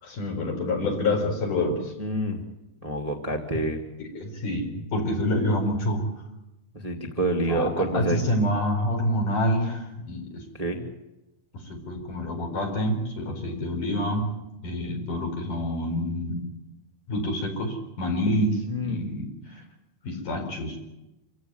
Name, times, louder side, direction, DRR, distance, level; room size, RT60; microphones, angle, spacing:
voice 1, 0.0-1.9 4.0-6.0 7.5-10.4 11.7-14.3 14.6-16.4 17.1-19.3 20.0-20.8, left 1 dB, 55° left, 2 dB, 6.0 m, -27 dB
voice 2, 2.0-2.4 2.8-3.8 6.7-8.2 10.5-10.8 18.6-19.1, right 1 dB, 15° right, 2 dB, 1.5 m, -27 dB
27.0 x 16.0 x 9.6 m, 0.95 s
omnidirectional pair, 4.4 m